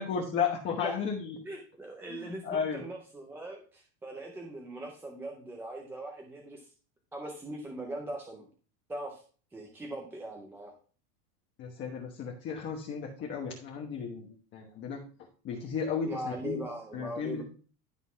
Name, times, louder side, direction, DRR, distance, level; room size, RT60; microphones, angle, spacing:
voice 1, 0.0-1.4 2.1-2.8 11.6-15.0 15.4-16.6 16.9-17.4, left 6 dB, 25° left, 0 dB, 1.2 m, -34 dB
voice 2, 1.4-6.7 7.1-8.5 8.9-9.2 9.5-10.7 16.0-17.4, right 1 dB, 5° right, 1 dB, 0.5 m, -40 dB
11.5 x 4.0 x 5.5 m, 0.40 s
supercardioid pair, 175°, 43 cm